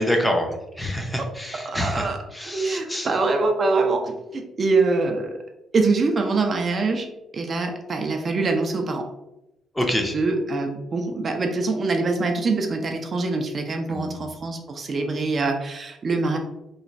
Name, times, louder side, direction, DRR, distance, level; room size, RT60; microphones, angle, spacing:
voice 1, 0.0-3.1 9.7-10.1 13.9-14.3, left 1 dB, 10° left, 2 dB, 0.5 m, -26 dB
voice 2, 1.7-2.2 2.4-5.3 5.7-7.1 7.3-9.1 10.1-16.4, right 3 dB, 45° right, 3 dB, 0.4 m, -24 dB
3.0 x 2.1 x 2.5 m, 0.91 s
cardioid pair, 90°, 0 cm